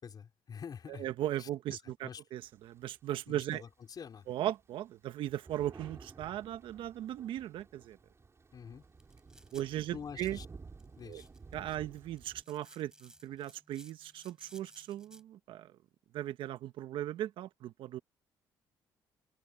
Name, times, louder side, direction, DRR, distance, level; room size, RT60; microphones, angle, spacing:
voice 1, 0.0-1.1 1.4-2.2 3.3-4.3 8.5-8.8 9.9-10.5 11.0-11.8, left 7 dB, 50° left, 4.5 m, -47 dB
voice 2, 0.9-3.6 4.3-8.0 9.5-10.4 11.1-11.2 11.5-15.7 16.1-18.0, right 12 dB, 75° right, 1.2 m, -38 dB
Thunder, 2.4-3.7 4.3-4.4 4.6-12.4, right 4 dB, 30° right, 5.4 m, -53 dB
sound 1, 8.7-15.2, right 1 dB, 10° right, 4.1 m, -61 dB
supercardioid pair, 70°, 9 cm